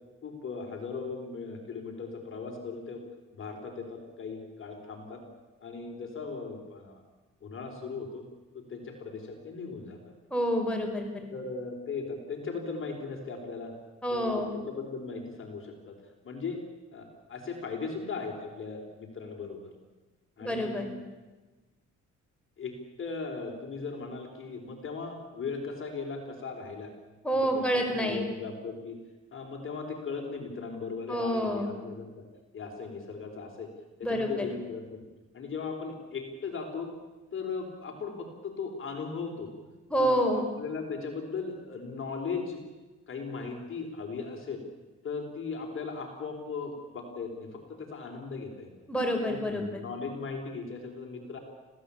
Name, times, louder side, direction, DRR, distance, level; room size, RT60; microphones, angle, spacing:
voice 1, 0.2-3.0 3.3-5.2 5.6-7.0 7.4-8.2 8.5-10.0 11.3-13.7 14.1-16.0 16.2-16.6 16.9-19.7 20.4-21.0 22.6-26.9 27.7-29.0 29.3-32.2 32.5-33.7 34.0-34.9 35.3-36.9 37.3-39.5 40.0-42.6 43.1-44.6 45.0-48.7 49.2-51.4, left 4 dB, 45° left, 2 dB, 4.3 m, -38 dB
voice 2, 10.3-11.3 14.0-14.5 20.4-20.9 27.2-28.2 31.1-31.7 34.0-34.5 39.9-40.4 48.9-49.8, equal, 5° left, 2 dB, 5.8 m, -28 dB
25.5 x 16.5 x 8.6 m, 1.2 s
cardioid pair, 90°, 30 cm